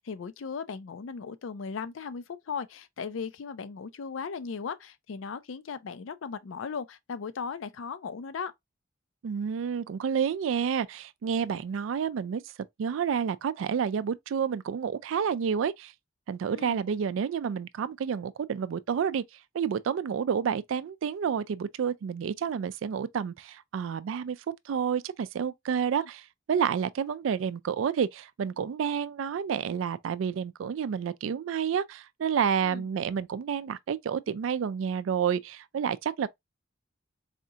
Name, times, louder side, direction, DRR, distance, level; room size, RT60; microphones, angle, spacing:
voice 1, 0.0-8.5 16.5-16.8 32.6-32.8, left 5 dB, 75° left, 0.4 m, -37 dB
voice 2, 9.2-12.4 12.8-15.9 16.3-19.2 19.5-24.4 24.7-36.3, right 7 dB, 75° right, 0.3 m, -29 dB
4.2 x 2.7 x 2.4 m
head